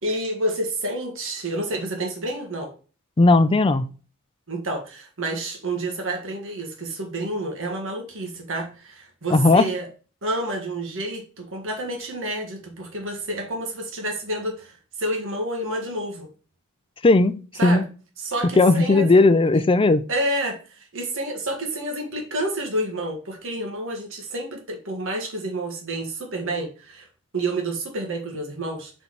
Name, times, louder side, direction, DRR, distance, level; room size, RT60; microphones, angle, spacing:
voice 1, 0.0-2.7 4.5-9.9 10.2-14.7 15.0-16.3 17.6-17.9 18.2-19.2 19.5-19.6 20.1-27.1 27.3-28.9, right 1 dB, 65° right, 1.7 m, -29 dB
voice 2, 3.2-3.9 9.3-9.7 17.0-17.8 18.6-20.0, left 3 dB, 25° left, 0.5 m, -17 dB
5.5 x 4.3 x 4.6 m
head